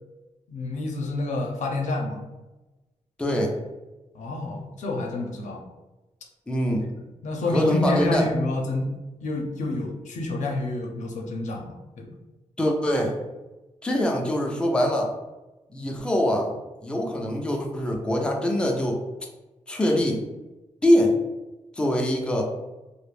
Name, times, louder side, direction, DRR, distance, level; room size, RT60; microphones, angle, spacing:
voice 1, 0.5-2.3 4.1-5.6 7.2-8.9 9.2-12.1, left 2 dB, 80° left, 1 dB, 0.5 m, -28 dB
voice 2, 3.2-3.6 6.5-6.9 7.5-8.3 12.6-13.2 13.8-15.1 15.7-16.5 16.8-19.0 19.7-20.3 20.8-21.2 21.7-22.5, left 1 dB, 5° left, 0 dB, 0.4 m, -23 dB
2.3 x 2.0 x 3.2 m, 1.1 s
wide cardioid pair, 115°, 12 cm